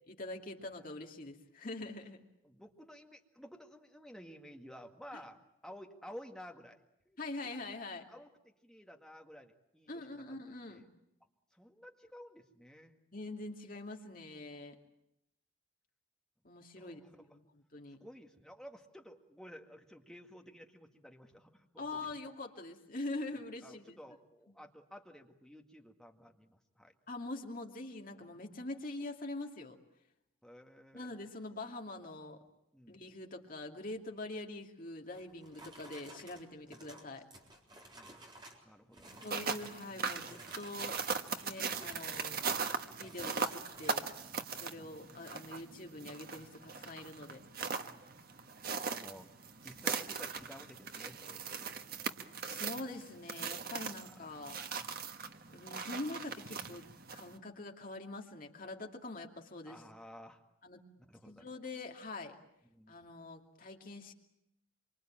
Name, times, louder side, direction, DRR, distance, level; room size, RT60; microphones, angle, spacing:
voice 1, 0.1-2.2 5.1-5.2 7.2-8.1 9.9-10.8 13.1-14.8 16.4-18.0 21.8-24.0 27.1-29.8 30.9-32.4 32.9-37.2 39.2-41.0 41.4-42.4 42.9-44.1 44.5-47.4 52.4-54.6 55.5-59.8 60.6-60.8 61.2-62.4 62.9-64.1, left 2 dB, 40° left, 2 dB, 2.6 m, -44 dB
voice 2, 2.4-6.8 7.1-7.2 8.1-10.0 10.3-10.4 10.7-10.9 11.5-12.9 16.8-17.1 18.0-22.1 23.6-26.9 30.4-31.1 32.7-33.0 36.7-36.8 37.9-39.2 47.9-48.3 48.9-49.3 49.6-51.8 54.9-55.0 59.7-60.4 61.0-61.5 62.7-63.0, equal, ahead, 2 dB, 1.9 m, -53 dB
sound 1, 35.1-38.7 38.9-39.8 40.1-44.2, right 1 dB, 20° right, 4.0 m, -55 dB
sound 2, 39.1-57.4, right 5 dB, 45° right, 1.3 m, -40 dB
26.0 x 25.0 x 9.0 m, 0.83 s
head